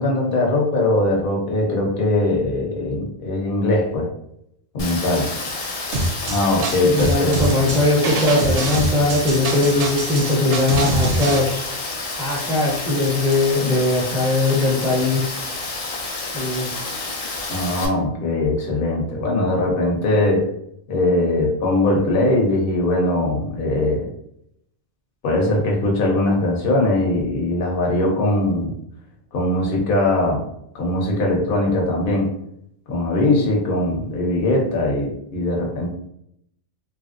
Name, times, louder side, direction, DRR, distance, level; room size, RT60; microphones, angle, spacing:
voice 1, 0.0-4.1 4.7-5.3 6.2-7.8 17.5-20.5 20.9-24.1 25.2-28.7 29.3-30.4 30.7-32.3 32.9-35.9, left 2 dB, 50° left, -1 dB, 0.8 m, -21 dB
Rain, 4.8-17.9, left 3 dB, 75° left, 0.3 m, -29 dB
sound 1, 5.9-11.4, right 2 dB, 70° right, 0.8 m, -24 dB
voice 2, 6.8-11.6 12.2-15.3 16.3-16.7, left 2 dB, 5° right, -4 dB, 0.6 m, -20 dB
3.0 x 2.5 x 2.5 m, 0.74 s
omnidirectional pair, 1.4 m